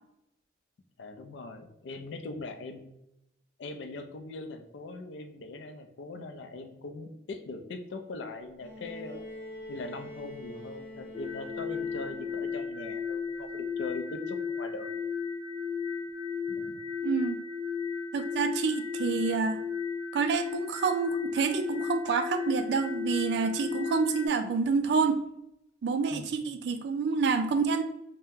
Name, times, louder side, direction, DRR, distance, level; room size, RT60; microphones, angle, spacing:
voice 1, 1.0-2.9 3.6-9.2 9.7-15.0 16.5-16.8 26.1-26.4, left 3 dB, 70° left, 7 dB, 0.4 m, -41 dB
Bowed string instrument, 8.6-12.6 13.9-14.0, left 1 dB, 35° left, 0.9 m, -45 dB
sound 1, 11.1-24.3, left 6 dB, 15° right, 0.8 m, -34 dB
voice 2, 17.0-17.4 18.1-19.6 20.1-25.2 25.8-27.8, right 5 dB, 60° right, 9 dB, 0.3 m, -28 dB
2.7 x 2.1 x 3.5 m, 0.83 s
head